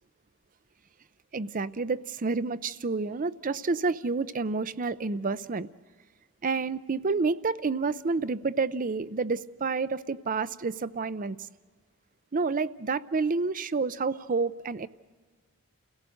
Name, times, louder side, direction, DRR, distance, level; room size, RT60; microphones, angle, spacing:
voice 1, 1.3-5.7 6.4-11.4 12.3-14.9, right 4 dB, 40° right, 0.6 m, -29 dB
30.0 x 17.0 x 6.4 m
head